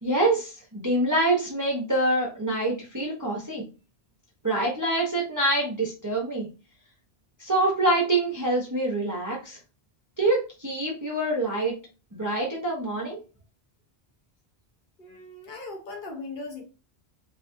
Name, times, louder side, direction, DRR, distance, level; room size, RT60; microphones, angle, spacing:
voice 1, 0.0-3.6 4.4-6.5 7.4-9.6 10.2-11.7 12.1-13.2, right 2 dB, 25° right, 0.4 m, -25 dB
voice 2, 15.0-16.6, left 3 dB, 60° left, 0.7 m, -38 dB
2.4 x 2.3 x 2.5 m
omnidirectional pair, 1.1 m